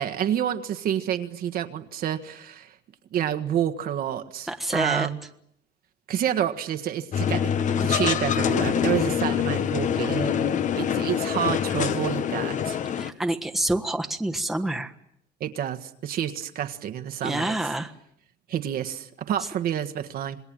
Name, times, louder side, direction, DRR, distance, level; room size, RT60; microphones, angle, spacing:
voice 1, 0.0-2.7 3.1-5.2 6.1-7.5 7.8-12.8 15.4-17.6 18.5-20.4, right 10 dB, 55° right, 7 dB, 1.6 m, -29 dB
voice 2, 4.5-5.1 13.0-14.9 17.2-17.9, right 1 dB, ahead, 3 dB, 1.4 m, -27 dB
sound 1, 7.1-13.1, left 8 dB, 45° left, 1.2 m, -25 dB
27.0 x 20.5 x 9.0 m, 0.72 s
cardioid pair, 140°, 18 cm